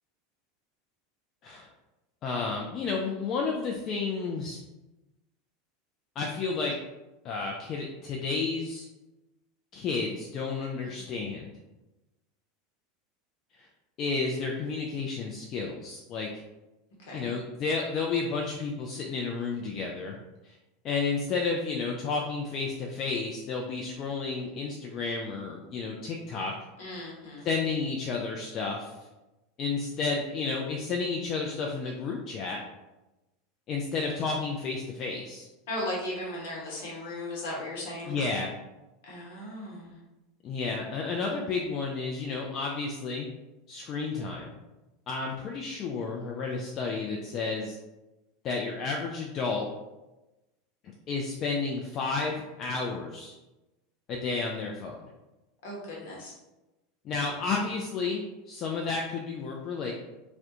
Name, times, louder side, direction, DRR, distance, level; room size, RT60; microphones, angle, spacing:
voice 1, 2.2-4.6 6.2-6.8 7.2-8.9 9.7-11.5 13.6-13.7 14.0-16.3 17.1-20.2 20.4-20.6 20.8-26.5 27.4-28.9 29.6-32.6 33.7-35.5 38.1-38.5 40.4-43.3 43.7-44.5 45.1-47.8 48.4-49.7 51.1-53.3 54.1-54.9 57.0-59.9, left 4 dB, 45° left, 0 dB, 0.3 m, -31 dB
voice 2, 10.8-11.2 17.1-17.3 26.8-27.5 35.7-38.1 39.0-40.0 55.6-56.3, left 1 dB, 65° left, -3 dB, 0.9 m, -37 dB
2.4 x 2.1 x 2.7 m, 1.0 s
hypercardioid pair, 85°, 0 cm